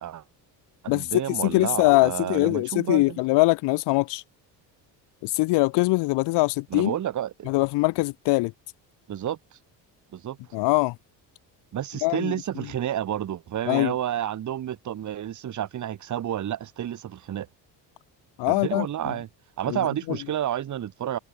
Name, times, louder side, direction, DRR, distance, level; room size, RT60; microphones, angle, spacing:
voice 1, 0.8-3.2 6.7-7.5 9.1-9.4 10.1-10.4 11.7-17.5 18.5-19.3 19.6-21.2, right 11 dB, 40° right, 0.9 m, -30 dB
voice 2, 1.4-4.2 5.2-6.9 7.5-8.5 10.5-10.9 12.0-12.3 13.7-13.9 18.4-19.1 19.7-19.8 20.1-20.2, left 22 dB, 70° left, 0.5 m, -22 dB
supercardioid pair, 75°, 44 cm